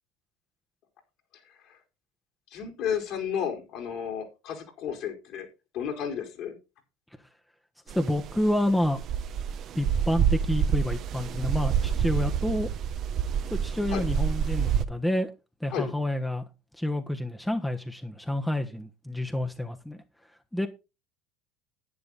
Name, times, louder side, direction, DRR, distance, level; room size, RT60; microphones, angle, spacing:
voice 1, 1.5-1.8 2.5-5.5 5.7-6.5 13.9-14.0 15.7-15.9, left 8 dB, 60° left, 4.6 m, -33 dB
voice 2, 7.9-9.0 9.7-12.7 13.6-15.3 15.6-16.4 16.8-20.0 20.5-20.7, left 1 dB, 5° left, 1.4 m, -28 dB
sound 1, 7.9-14.8, right 8 dB, 50° right, 1.1 m, -27 dB
11.0 x 9.6 x 4.2 m
hypercardioid pair, 80°, 0 cm